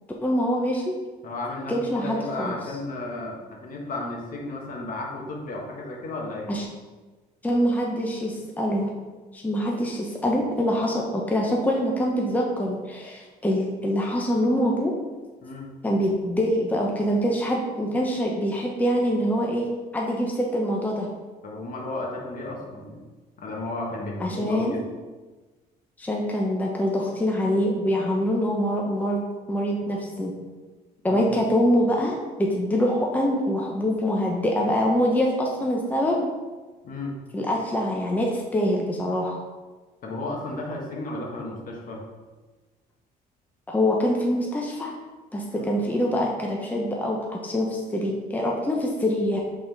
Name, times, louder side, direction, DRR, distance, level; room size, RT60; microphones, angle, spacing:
voice 1, 0.2-0.9 1.7-2.5 6.5-6.6 7.4-8.9 9.3-14.9 15.8-19.7 19.9-21.1 24.2-24.8 26.0-30.3 31.0-36.3 37.3-39.4 43.7-44.9 45.3-49.4, equal, 10° left, -1 dB, 0.9 m, -24 dB
voice 2, 1.2-6.5 15.4-15.7 21.4-23.0 23.4-24.9 31.1-31.4 36.8-37.1 40.0-42.0 45.6-45.7, left 2 dB, 55° left, -1 dB, 1.6 m, -33 dB
5.6 x 4.2 x 5.4 m, 1.3 s
cardioid pair, 110°, 17 cm